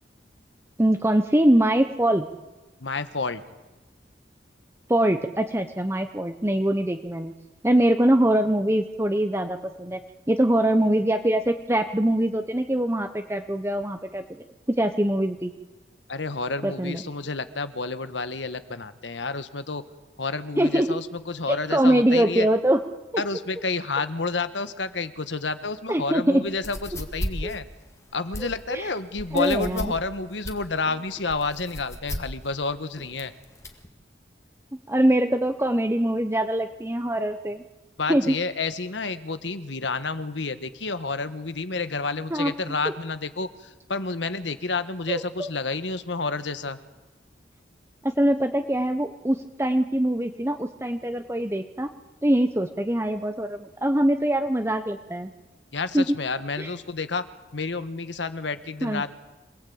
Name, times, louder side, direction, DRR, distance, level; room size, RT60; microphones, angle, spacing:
voice 1, 0.8-2.3 4.9-7.3 7.6-10.0 10.3-14.2 14.8-15.5 16.6-17.0 20.6-20.9 21.5-22.8 25.9-26.5 27.4-27.5 28.4-28.9 29.3-29.9 34.9-37.6 38.1-38.3 42.3-42.5 45.1-45.5 48.0-51.9 52.2-55.3 55.9-56.0 56.6-56.7 58.8-59.0, right 1 dB, 15° right, 6 dB, 0.9 m, -23 dB
voice 2, 2.8-3.4 16.1-19.8 20.2-22.5 23.2-27.6 28.1-33.3 38.0-46.8 55.7-57.3 57.5-59.1, left 3 dB, 90° left, 12 dB, 1.4 m, -30 dB
sound 1, 26.5-33.9, equal, 15° left, 1.9 m, -35 dB
26.5 x 18.5 x 8.7 m, 1.1 s
head